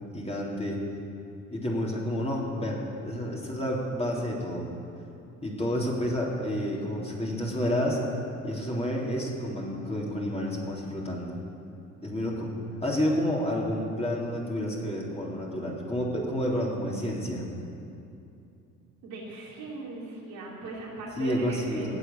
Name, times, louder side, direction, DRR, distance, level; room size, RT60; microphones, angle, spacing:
voice 1, 0.1-0.8 1.5-4.7 5.4-8.0 8.4-11.4 12.0-12.5 12.8-17.4 21.2-22.0, equal, 15° left, -3 dB, 3.4 m, -30 dB
voice 2, 19.0-22.0, right 3 dB, 60° right, -4 dB, 3.2 m, -39 dB
18.0 x 8.0 x 7.2 m, 2.6 s
figure-of-eight pair, 50°, 39 cm